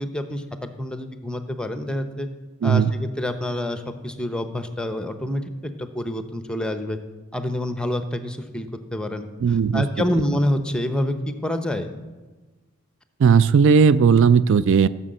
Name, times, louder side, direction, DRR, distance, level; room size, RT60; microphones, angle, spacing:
voice 1, 0.0-2.3 2.6-7.0 7.3-9.2 9.7-11.9, left 1 dB, 5° left, 8 dB, 0.8 m, -27 dB
voice 2, 2.6-2.9 9.4-9.8 13.2-14.9, right 6 dB, 60° right, 15 dB, 0.4 m, -16 dB
15.0 x 6.1 x 7.7 m, 1.2 s
head